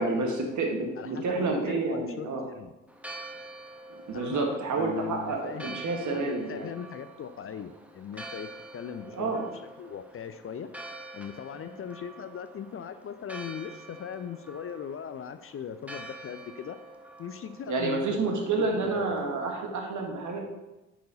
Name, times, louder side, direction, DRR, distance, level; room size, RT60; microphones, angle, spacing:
voice 1, 0.0-2.4 3.9-6.7 9.2-9.5 17.7-20.4, right 3 dB, 50° right, 2 dB, 1.7 m, -29 dB
voice 2, 1.0-2.7 4.1-9.5 9.8-10.7 11.1-16.8 17.2-19.4, left 8 dB, 35° left, 10 dB, 0.6 m, -39 dB
Church bell, 2.9-19.5, right 2 dB, 5° right, 1.0 m, -46 dB
10.0 x 4.7 x 4.0 m, 1.0 s
figure-of-eight pair, 40°, 38 cm